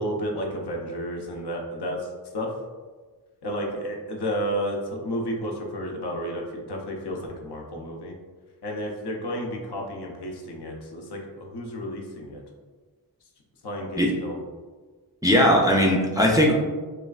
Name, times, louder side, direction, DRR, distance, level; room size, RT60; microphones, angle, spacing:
voice 1, 0.0-2.5 3.4-8.1 8.6-12.4 13.6-14.4, equal, 75° left, 0 dB, 0.6 m, -32 dB
voice 2, 15.2-16.5, equal, 10° right, -1 dB, 0.3 m, -19 dB
3.1 x 2.3 x 2.3 m, 1.4 s
wide cardioid pair, 80°, 40 cm